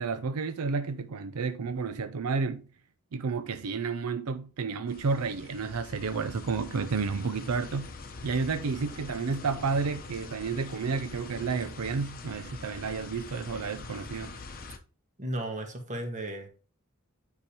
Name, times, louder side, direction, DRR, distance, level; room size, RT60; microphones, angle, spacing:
voice 1, 0.0-2.6 3.1-7.9 8.2-14.4, right 5 dB, 85° right, 0.5 m, -31 dB
sound 1, 4.9-14.8, left 3 dB, 40° left, 0.8 m, -44 dB
voice 2, 15.2-16.5, right 1 dB, 35° right, 1.6 m, -34 dB
9.4 x 5.0 x 2.9 m
head